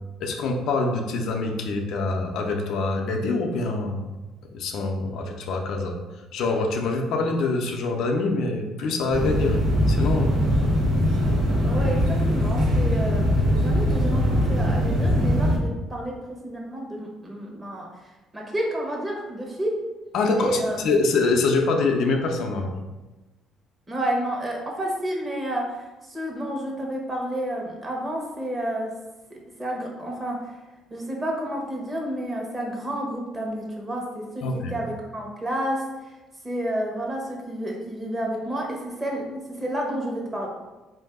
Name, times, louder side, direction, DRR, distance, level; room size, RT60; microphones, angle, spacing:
voice 1, 0.2-4.0 4.5-6.0 6.3-9.6 9.9-10.3 20.1-22.7 34.4-34.7, left 3 dB, 70° left, 2 dB, 0.5 m, -25 dB
sound 1, 9.1-15.6, equal, 75° right, 1.2 m, -21 dB
voice 2, 11.6-19.8 20.4-20.8 23.9-28.9 29.3-30.5 30.9-36.2 36.4-40.5, right 1 dB, 25° right, -1 dB, 1.1 m, -30 dB
3.7 x 2.7 x 3.5 m, 1.1 s
supercardioid pair, 80°, 0 cm